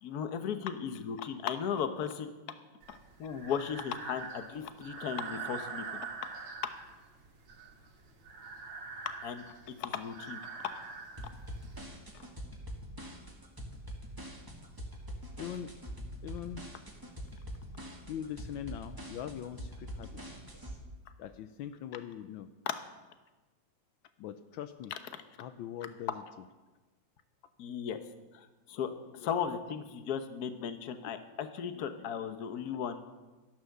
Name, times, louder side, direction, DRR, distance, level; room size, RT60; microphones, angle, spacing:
voice 1, 0.0-2.3 2.9-6.0 9.2-10.4 12.1-12.2 22.7-22.8 24.9-25.0 27.6-28.0 28.3-33.0, left 7 dB, 55° left, 9 dB, 1.4 m, -36 dB
Breathing, 2.8-11.8, right 5 dB, 80° right, 2.1 m, -44 dB
sound 1, 11.2-20.8, equal, 10° right, 1.8 m, -44 dB
voice 2, 15.3-15.7 16.2-16.6 18.0-20.1 21.2-22.5 24.2-24.9 25.4-26.2 29.1-29.3 31.8-31.9, left 10 dB, 80° left, 11 dB, 1.4 m, -42 dB
13.0 x 11.0 x 6.6 m, 1.2 s
omnidirectional pair, 2.1 m